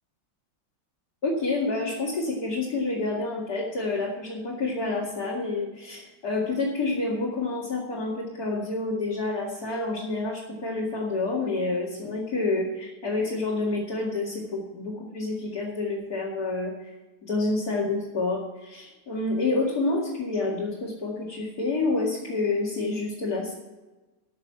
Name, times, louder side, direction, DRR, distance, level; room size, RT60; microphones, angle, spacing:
voice 1, 1.2-16.7 17.3-23.5, left 3 dB, 45° left, -5 dB, 2.6 m, -28 dB
13.5 x 6.7 x 6.9 m, 1.1 s
omnidirectional pair, 2.2 m